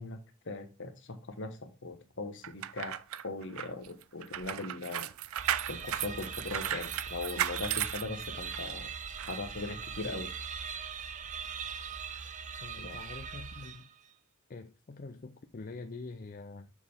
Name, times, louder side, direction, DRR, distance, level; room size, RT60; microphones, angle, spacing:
voice 1, 0.0-3.0 3.2-5.1 5.7-8.9 9.3-10.3 12.8-13.0, left 3 dB, 55° left, 1.3 m, -40 dB
sound 1, 2.4-8.7 9.2-9.3, right 11 dB, 70° right, 0.4 m, -35 dB
sound 2, 5.4-14.1, right 6 dB, 35° right, 0.7 m, -41 dB
voice 2, 12.6-13.9 14.5-16.7, left 3 dB, 40° left, 0.5 m, -45 dB
7.0 x 6.2 x 3.4 m
head